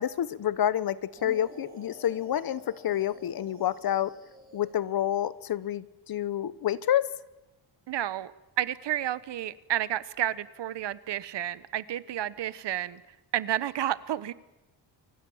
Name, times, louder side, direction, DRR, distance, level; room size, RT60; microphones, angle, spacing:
voice 1, 0.0-4.1 4.5-7.1, left 11 dB, 55° left, 1.0 m, -28 dB
sound 1, 1.1-5.1, equal, 20° right, 6.3 m, -49 dB
voice 2, 7.9-8.3 8.6-13.0 13.3-14.3, right 12 dB, 75° right, 1.3 m, -31 dB
30.0 x 24.0 x 7.3 m
wide cardioid pair, 165°, 42 cm